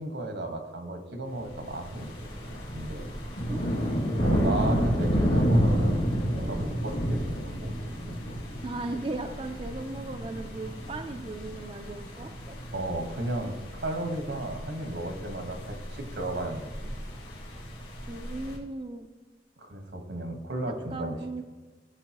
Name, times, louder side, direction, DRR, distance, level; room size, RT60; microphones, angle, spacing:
voice 1, 0.0-2.1 2.4-3.1 4.2-8.4 12.7-17.0 19.6-21.2, right 1 dB, 85° right, 4 dB, 1.3 m, -35 dB
sound 1, 1.4-18.6, equal, 75° left, 2.1 m, -31 dB
voice 2, 3.5-3.8 8.6-12.6 18.1-19.1 20.9-21.4, right 2 dB, 30° right, 5 dB, 0.4 m, -37 dB
14.5 x 5.4 x 2.9 m, 1.3 s
head